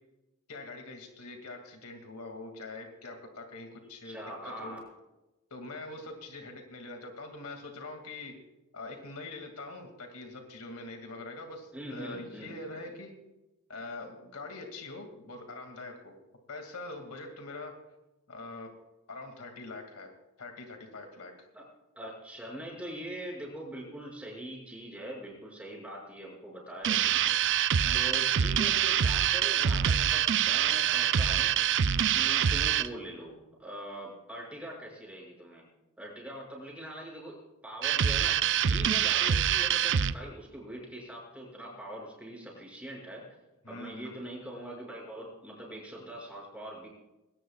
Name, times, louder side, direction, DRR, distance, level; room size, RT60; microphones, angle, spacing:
voice 1, 0.5-4.8 5.5-8.3 8.7-13.1 13.7-16.2 16.5-17.7 18.3-18.7 19.1-20.1 20.4-21.5 27.8-28.1 32.1-32.5 43.6-44.2, left 2 dB, 75° left, 4 dB, 2.3 m, -43 dB
voice 2, 4.0-4.8 11.7-12.9 21.5-21.6 21.9-27.7 27.9-31.8 32.1-35.7 36.0-37.4 37.6-38.4 38.7-43.2 43.7-46.9, right 1 dB, 5° right, -2 dB, 6.2 m, -42 dB
sound 1, 26.8-32.9 37.8-40.1, right 9 dB, 55° right, 0.5 m, -25 dB
21.0 x 18.5 x 2.4 m, 1.0 s
head